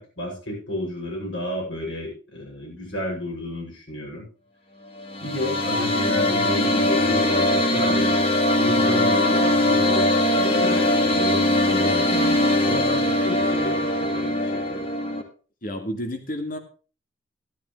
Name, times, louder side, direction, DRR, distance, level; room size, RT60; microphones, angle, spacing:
voice 1, 0.0-4.3 5.2-8.1 8.6-14.9, left 1 dB, 80° left, -2 dB, 6.7 m, -31 dB
sound 1, 5.0-15.2, left 1 dB, 30° left, 1.8 m, -21 dB
voice 2, 15.6-16.6, equal, 45° left, 5 dB, 1.9 m, -30 dB
13.0 x 12.0 x 3.2 m, 0.36 s
head